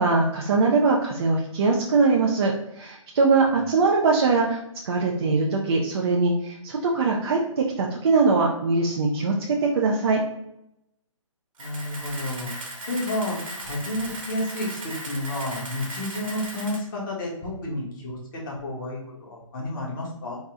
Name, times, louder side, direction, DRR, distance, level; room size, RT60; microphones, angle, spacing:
voice 1, 0.0-10.2, right 4 dB, 50° right, -1 dB, 0.6 m, -22 dB
voice 2, 11.6-12.5 12.9-20.4, left 1 dB, 40° left, -4 dB, 1.4 m, -31 dB
Camera, 11.6-16.8, right 1 dB, 75° right, 1.4 m, -37 dB
4.1 x 2.3 x 3.6 m, 0.81 s
hypercardioid pair, 145°, 17 cm